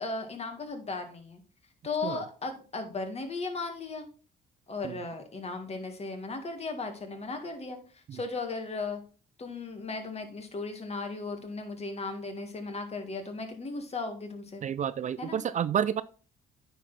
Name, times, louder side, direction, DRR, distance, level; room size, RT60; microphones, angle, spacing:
voice 1, 0.0-1.4 1.8-4.1 4.7-9.0 9.4-14.6 15.2-15.4, left 3 dB, 35° left, 5 dB, 1.9 m, -36 dB
voice 2, 14.6-16.0, right 9 dB, 45° right, 15 dB, 0.4 m, -30 dB
9.3 x 4.0 x 4.1 m, 0.38 s
cardioid pair, 80°, 18 cm